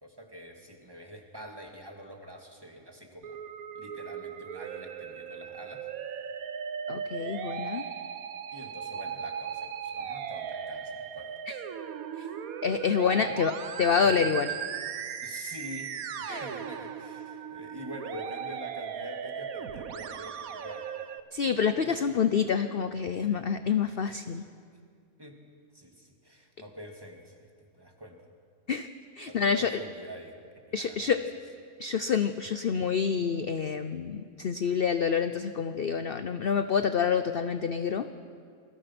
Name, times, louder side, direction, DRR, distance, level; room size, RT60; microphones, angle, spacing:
voice 1, 0.0-3.4 3.7-5.9 8.5-11.3 13.2-13.4 14.0-14.3 15.2-20.9 21.8-22.0 23.2-23.5 24.1-24.2 25.2-28.3 29.3-30.4 30.7-31.1, equal, 15° right, 2 dB, 2.4 m, -45 dB
Musical instrument, 3.2-21.2, right 8 dB, 65° right, 1.3 m, -37 dB
voice 2, 6.9-7.8 12.2-12.3 12.6-13.5 13.8-14.5 16.3-16.5 21.3-24.4 28.7-28.9 29.2-29.7 30.7-31.2 31.8-38.1, left 6 dB, 50° left, 10 dB, 0.7 m, -27 dB
28.5 x 21.5 x 6.1 m, 2.2 s
omnidirectional pair, 1.8 m